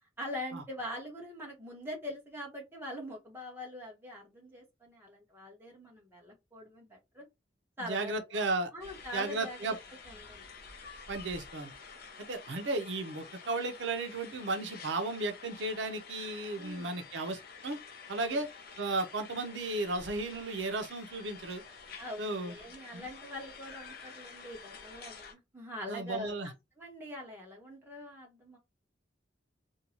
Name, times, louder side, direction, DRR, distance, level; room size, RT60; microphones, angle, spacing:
voice 1, 0.2-7.3 7.8-8.4 8.7-9.8 10.1-10.5 16.6-16.9 18.1-18.4 22.0-28.6, left 1 dB, 15° right, 1.0 m, -43 dB
voice 2, 7.8-8.7 9.1-9.8 11.1-11.7 12.2-17.8 18.1-18.5 18.8-21.6 22.2-22.5 22.9-23.1 25.9-26.5, right 2 dB, 90° right, 0.6 m, -34 dB
sound 1, 8.8-25.3, left 5 dB, 55° left, 0.6 m, -50 dB
2.6 x 2.2 x 2.9 m
head